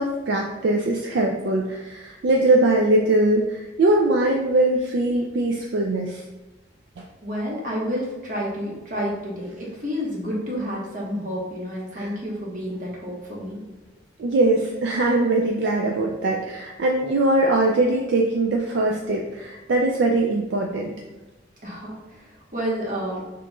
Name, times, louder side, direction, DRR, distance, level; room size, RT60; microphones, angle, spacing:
voice 1, 0.0-6.2 11.9-12.1 14.2-20.9, right 2 dB, 65° right, 0 dB, 0.4 m, -21 dB
voice 2, 7.2-13.6 21.6-23.2, equal, 45° right, -4 dB, 1.2 m, -30 dB
5.9 x 3.0 x 2.3 m, 1.1 s
head